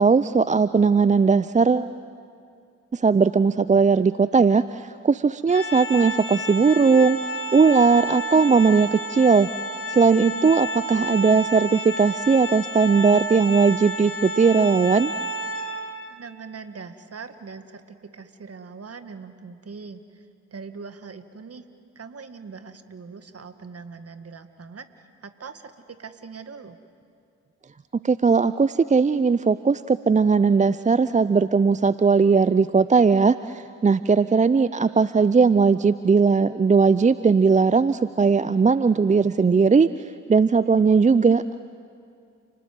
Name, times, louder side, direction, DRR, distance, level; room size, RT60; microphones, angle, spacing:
voice 1, 0.0-1.9 2.9-9.5 9.9-15.1 28.0-39.9 40.3-41.4, right 5 dB, 20° right, 15 dB, 0.6 m, -18 dB
Organ, 5.5-16.2, right 1 dB, 35° left, 2.6 m, -31 dB
voice 2, 16.1-21.6 22.0-26.8, right 5 dB, 40° right, 9 dB, 2.0 m, -41 dB
30.0 x 20.0 x 7.8 m, 2.4 s
hypercardioid pair, 40°, 38 cm